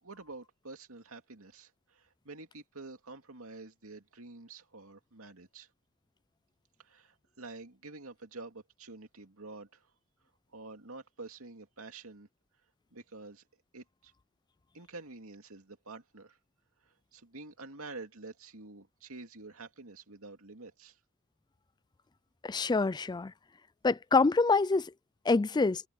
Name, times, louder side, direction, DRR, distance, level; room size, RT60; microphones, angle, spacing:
voice 1, 0.0-5.7 6.8-9.9 10.5-12.3 12.9-13.4 13.7-14.1 14.7-16.4 16.8-21.0, right 3 dB, 75° right, 2.6 m, -48 dB
voice 2, 22.4-23.3 23.8-24.9 25.3-25.8, left 3 dB, 20° left, 0.4 m, -26 dB
head